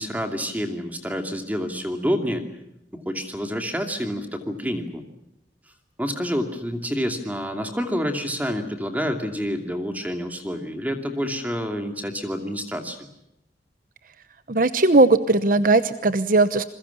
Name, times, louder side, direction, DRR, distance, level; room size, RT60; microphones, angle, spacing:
voice 1, 0.0-2.5 2.9-5.0 6.0-13.0, equal, 10° right, 5 dB, 2.6 m, -28 dB
voice 2, 14.5-16.6, right 2 dB, 50° right, 12 dB, 0.9 m, -18 dB
28.0 x 22.0 x 7.1 m, 0.83 s
head